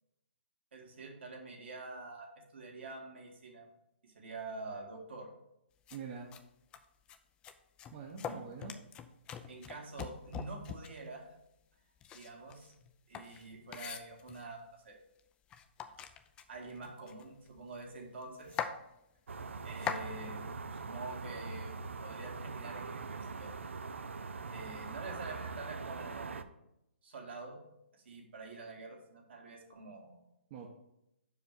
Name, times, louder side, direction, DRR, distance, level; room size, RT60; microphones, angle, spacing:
voice 1, 0.7-3.7 4.0-5.3 8.3-8.4 9.5-11.3 12.1-12.7 13.1-15.0 16.5-18.6 19.6-20.5 20.7-21.7 22.0-23.5 24.5-26.4 27.0-27.6 27.9-30.2, right 3 dB, 65° right, 0 dB, 2.0 m, -46 dB
sound 1, 5.9-6.0 6.3-6.4 6.7-7.2 7.4-11.1 12.0-14.5 15.2-15.3 15.5-17.6 17.9-18.0 18.2-18.7 19.4-20.1, left 8 dB, 15° left, 0.4 m, -42 dB
voice 2, 5.9-6.3 7.9-8.7 30.5-30.7, right 6 dB, 30° right, 0 dB, 0.8 m, -45 dB
sound 2, 19.3-26.4, right 4 dB, 85° right, 0.6 m, -42 dB
5.5 x 4.9 x 6.5 m, 0.84 s
hypercardioid pair, 150°, 6 cm